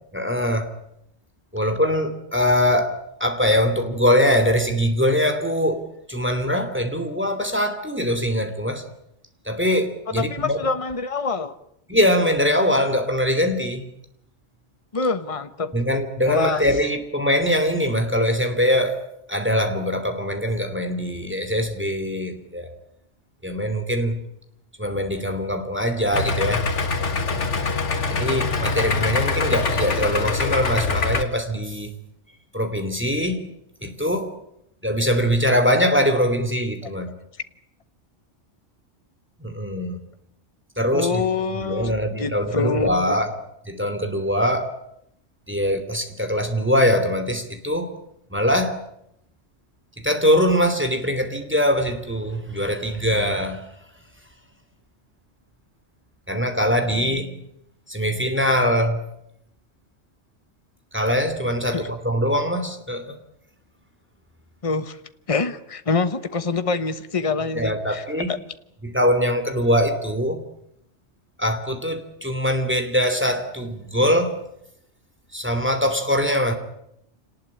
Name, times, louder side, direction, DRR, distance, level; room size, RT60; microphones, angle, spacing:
voice 1, 0.1-0.7 1.5-8.8 9.5-10.7 11.9-13.9 15.7-19.0 19.3-22.7 23.4-24.2 24.8-26.7 28.1-31.9 32.5-33.4 33.8-34.3 34.8-37.1 39.4-40.0 40.8-41.2 41.5-43.3 43.7-44.7 45.5-47.9 48.3-48.8 50.0-53.7 56.3-57.4 57.9-59.0 60.9-63.2 67.5-68.3 68.8-70.4 71.4-74.4 75.3-76.5, equal, 10° right, 7 dB, 2.9 m, -22 dB
voice 2, 10.2-11.5 14.9-15.7 16.2-16.6 40.9-43.2 61.7-61.9 64.6-65.0 65.3-68.4, left 4 dB, 30° left, 11 dB, 1.2 m, -25 dB
Idling, 26.1-31.2, left 4 dB, 75° left, 2.0 m, -24 dB
26.5 x 19.5 x 9.8 m, 0.78 s
omnidirectional pair, 1.2 m